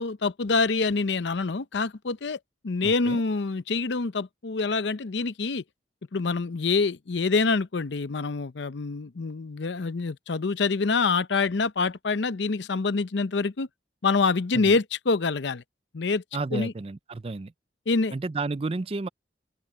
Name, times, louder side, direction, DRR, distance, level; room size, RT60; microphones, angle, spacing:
voice 1, 0.0-2.4 2.6-5.6 6.1-13.7 14.0-15.6 15.9-16.2 16.5-16.7 17.9-18.1, left 4 dB, 75° left, 0.7 m, -26 dB
voice 2, 2.8-3.2 14.5-14.8 16.3-17.5 18.1-19.1, right 3 dB, 30° right, 0.4 m, -32 dB
open air
head